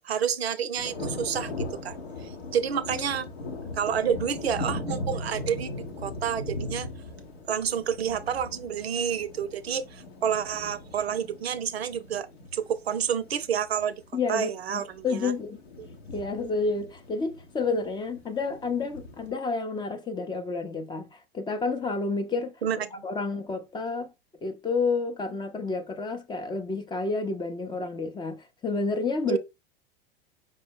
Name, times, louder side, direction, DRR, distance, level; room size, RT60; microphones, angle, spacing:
voice 1, 0.0-3.3 3.8-5.7 6.0-6.9 7.5-12.3 12.5-14.0 14.3-15.3 22.6-23.0 29.3-29.4, right 8 dB, 85° right, 0.5 m, -29 dB
sound 1, 0.8-19.3, left 2 dB, 80° left, 1.1 m, -39 dB
voice 2, 14.1-15.6 16.1-22.6 23.0-24.1 24.4-29.4, left 4 dB, 15° left, 0.5 m, -30 dB
5.2 x 2.0 x 3.6 m
hypercardioid pair, 100°, 30 cm